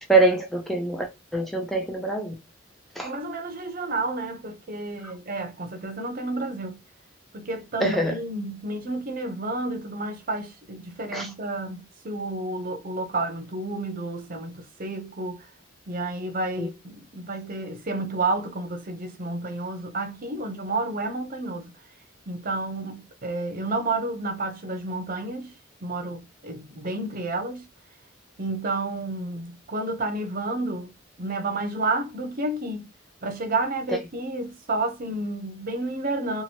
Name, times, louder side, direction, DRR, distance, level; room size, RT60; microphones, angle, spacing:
voice 1, 0.1-1.1 1.3-2.3 3.0-3.1 7.8-8.2 11.1-11.3 16.6-16.7, right 2 dB, ahead, 0.4 m, -23 dB
voice 2, 3.0-6.8 7.3-15.5 15.9-21.7 22.3-25.5 25.8-27.7 28.4-30.9 31.2-32.9 33.2-36.4, right 2 dB, 45° right, 0.6 m, -30 dB
2.8 x 2.5 x 2.8 m
head